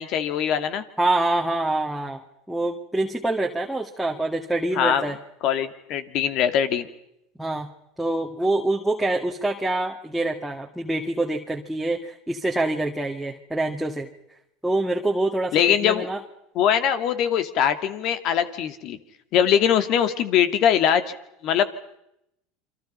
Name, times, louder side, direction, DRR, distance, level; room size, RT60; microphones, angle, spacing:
voice 1, 0.0-0.8 4.7-5.1 5.4-6.9 15.5-16.1 16.5-19.0 19.3-21.1 21.4-21.7, left 9 dB, 55° left, 11 dB, 2.3 m, -22 dB
voice 2, 1.0-2.2 2.5-5.2 7.4-7.7 8.0-14.1 14.6-16.2, right 2 dB, 5° right, 0 dB, 2.0 m, -25 dB
28.5 x 24.0 x 5.6 m, 0.80 s
supercardioid pair, 110°, 0 cm